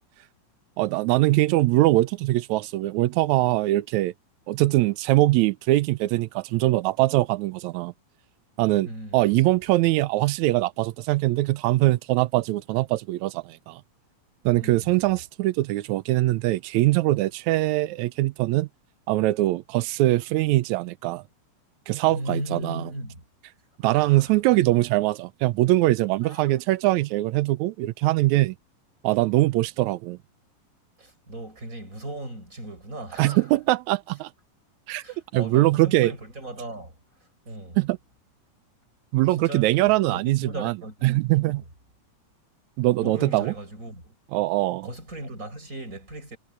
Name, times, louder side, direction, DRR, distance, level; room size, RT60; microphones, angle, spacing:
voice 1, 0.8-4.1 4.5-7.9 8.6-8.9 9.1-13.8 14.5-18.7 19.1-21.2 21.9-22.9 23.8-28.6 29.0-30.2 33.2-34.3 34.9-35.0 35.3-36.1 37.8-38.0 39.1-40.8 41.0-41.6 42.8-43.5 44.3-44.9, right 17 dB, 85° right, 1.6 m, -22 dB
voice 2, 8.8-9.2 14.6-15.2 22.1-23.3 23.8-24.8 26.2-26.6 31.0-33.5 35.0-37.0 37.4-37.8 39.3-41.6 43.0-44.1 44.8-46.4, right 1 dB, 20° right, 8.1 m, -37 dB
omnidirectional pair, 4.0 m